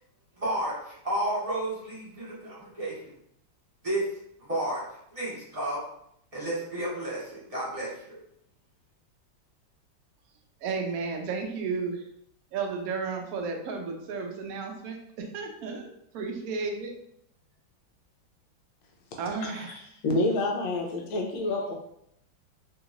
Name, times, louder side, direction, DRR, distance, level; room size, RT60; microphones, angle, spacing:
voice 1, 0.4-3.0 3.8-4.0 4.4-4.8 5.1-5.8 6.3-8.2, right 1 dB, 25° right, -9 dB, 0.9 m, -32 dB
voice 2, 10.6-12.0 12.5-16.9 19.2-19.8, right 4 dB, 80° right, 2 dB, 0.8 m, -33 dB
voice 3, 19.4-19.8 20.0-21.7, left 2 dB, 85° left, 1 dB, 1.4 m, -28 dB
3.5 x 2.9 x 2.4 m, 0.74 s
omnidirectional pair, 2.1 m